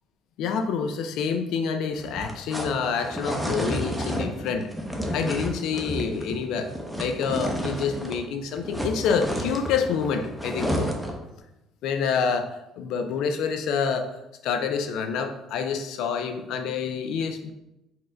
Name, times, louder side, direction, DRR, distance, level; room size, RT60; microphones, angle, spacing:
voice 1, 0.4-4.7 5.1-6.7 7.0-10.9 11.8-14.1 14.4-17.5, left 6 dB, 70° left, 6 dB, 0.5 m, -27 dB
sound 1, 1.9-8.3 8.5-11.2, equal, ahead, 0.6 m, -31 dB
4.3 x 2.5 x 4.3 m, 0.91 s
cardioid pair, 130°, 0 cm